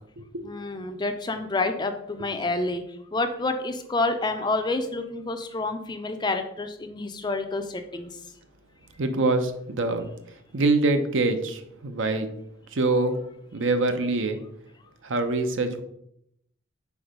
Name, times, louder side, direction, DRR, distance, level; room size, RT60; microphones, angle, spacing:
voice 1, 0.4-2.8 3.1-8.1, left 2 dB, 20° left, 7 dB, 0.4 m, -28 dB
voice 2, 9.0-10.1 10.5-12.3 12.7-13.2 13.5-14.4 15.0-15.8, right 2 dB, 65° right, 7 dB, 0.7 m, -24 dB
4.6 x 4.5 x 5.0 m, 0.74 s
head